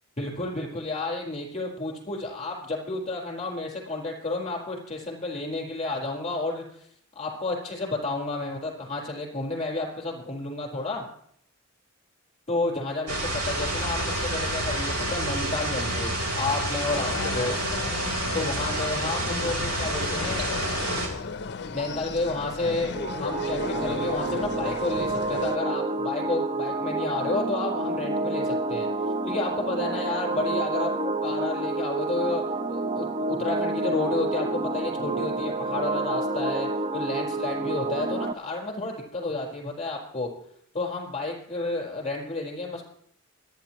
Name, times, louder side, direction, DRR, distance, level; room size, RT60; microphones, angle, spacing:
voice 1, 0.2-6.6 7.1-11.0 12.5-17.6 18.3-20.5 21.7-22.9 23.2-28.9 29.2-32.4 32.7-40.3 40.7-42.8, left 2 dB, 30° left, -1 dB, 4.5 m, -31 dB
sound 1, 13.1-21.1, right 1 dB, 80° right, 3.8 m, -29 dB
sound 2, 16.9-25.6, left 4 dB, 50° left, 0.6 m, -35 dB
sound 3, 22.9-38.3, right 2 dB, 30° right, 0.6 m, -29 dB
28.0 x 9.8 x 3.0 m, 0.66 s
head